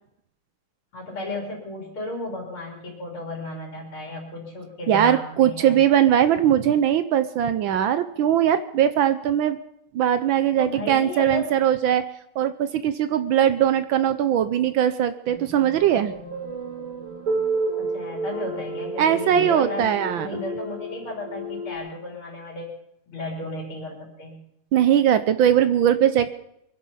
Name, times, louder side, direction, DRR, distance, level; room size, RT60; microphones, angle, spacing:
voice 1, 0.9-5.8 10.6-11.5 17.8-22.7 23.1-24.4, left 2 dB, 80° left, -1 dB, 4.5 m, -34 dB
voice 2, 4.9-9.6 9.9-12.0 12.4-16.1 19.0-20.4 24.7-26.3, right 10 dB, 70° right, 11 dB, 1.4 m, -20 dB
sound 1, 15.3-21.8, right 2 dB, 40° right, 4.5 m, -31 dB
23.0 x 10.5 x 5.6 m, 0.78 s
omnidirectional pair, 2.3 m